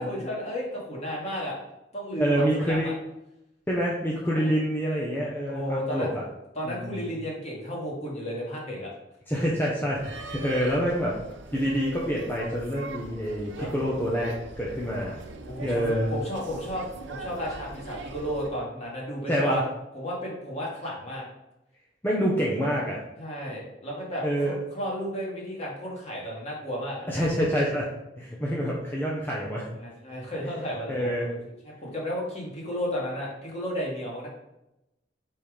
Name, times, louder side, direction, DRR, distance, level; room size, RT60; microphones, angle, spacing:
voice 1, 0.0-1.5 1.9-2.9 4.3-4.5 5.5-6.1 6.5-8.9 10.4-10.5 13.6-13.7 15.5-19.6 19.9-21.2 23.2-27.1 29.7-31.4 31.8-34.3, equal, 35° left, -4 dB, 2.1 m, -33 dB
voice 2, 2.2-2.9 3.7-6.2 6.6-7.1 9.3-11.2 11.5-15.3 15.6-16.1 19.3-19.6 22.0-23.0 24.2-24.5 27.1-27.9 28.2-29.7 30.4-30.5 30.9-31.3, equal, 10° left, -5 dB, 0.9 m, -27 dB
sound 1, 9.9-18.5, right 2 dB, 80° right, 0.8 m, -41 dB
5.4 x 4.4 x 5.0 m, 0.91 s
head